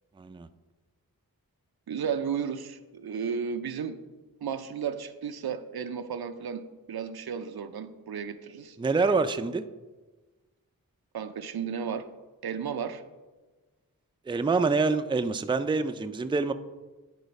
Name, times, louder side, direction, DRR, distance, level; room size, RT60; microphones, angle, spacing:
voice 1, 0.2-0.5 8.8-9.6 14.3-16.5, right 4 dB, 15° right, 10 dB, 0.4 m, -26 dB
voice 2, 1.9-4.0 4.4-6.6 6.9-8.8 11.1-12.0 12.4-13.0, right 7 dB, 80° right, 9 dB, 0.6 m, -33 dB
10.0 x 4.0 x 5.2 m, 1.2 s
cardioid pair, 45°, 37 cm